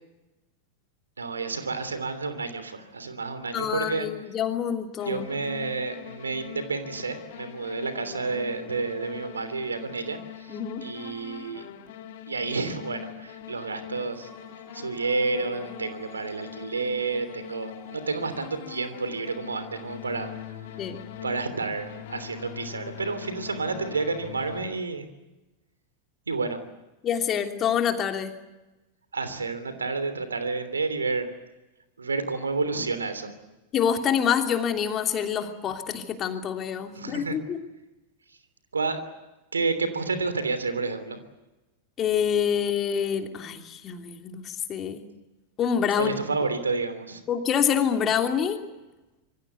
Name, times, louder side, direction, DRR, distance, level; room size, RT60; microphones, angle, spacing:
voice 1, 1.2-4.1 5.1-11.6 12.3-14.3 14.7-20.3 21.2-25.1 26.3-26.6 29.1-31.3 32.0-33.3 36.9-37.3 38.7-39.0 39.5-41.2 46.0-47.2, right 4 dB, 75° right, 11 dB, 3.1 m, -30 dB
voice 2, 3.5-5.2 10.5-10.9 20.8-21.0 27.0-28.4 33.7-37.6 42.0-45.0 45.6-46.2 47.3-48.6, left 8 dB, 30° left, 5 dB, 3.0 m, -26 dB
sound 1, 5.0-24.7, left 10 dB, 55° left, 2.5 m, -43 dB
sound 2, 14.1-19.3 19.7-20.2, right 1 dB, 20° right, 6.7 m, -52 dB
27.0 x 23.5 x 8.2 m, 1.0 s
figure-of-eight pair, 90°, 0 cm